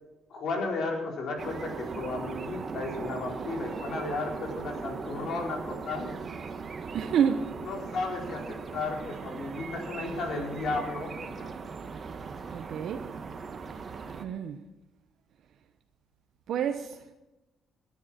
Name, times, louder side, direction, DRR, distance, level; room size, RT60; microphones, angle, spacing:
voice 1, 0.3-6.1 7.6-11.5, left 3 dB, 65° left, 0 dB, 4.5 m, -34 dB
sound 1, 1.4-14.3, right 5 dB, 45° right, 1.4 m, -39 dB
voice 2, 6.9-7.6 12.5-13.1 14.2-14.6 16.5-17.1, right 8 dB, 70° right, 6 dB, 0.9 m, -29 dB
19.0 x 11.0 x 4.4 m, 0.98 s
cardioid pair, 90°, 0 cm